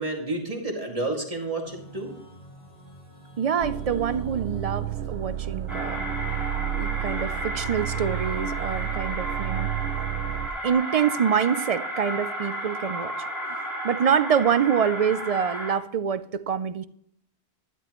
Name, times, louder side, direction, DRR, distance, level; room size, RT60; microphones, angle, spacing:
voice 1, 0.0-2.1, right 2 dB, 35° right, 0 dB, 2.3 m, -30 dB
sound 1, 1.6-8.9, left 1 dB, 85° left, 3.7 m, -49 dB
voice 2, 3.4-6.0 6.8-9.7 10.6-13.1 13.8-16.9, right 7 dB, 55° right, 13 dB, 0.4 m, -25 dB
sound 2, 3.6-10.5, right 11 dB, 70° right, 0.8 m, -31 dB
sound 3, 5.7-15.7, right 1 dB, ahead, 3.1 m, -33 dB
12.0 x 11.0 x 3.0 m, 0.65 s
omnidirectional pair, 1.1 m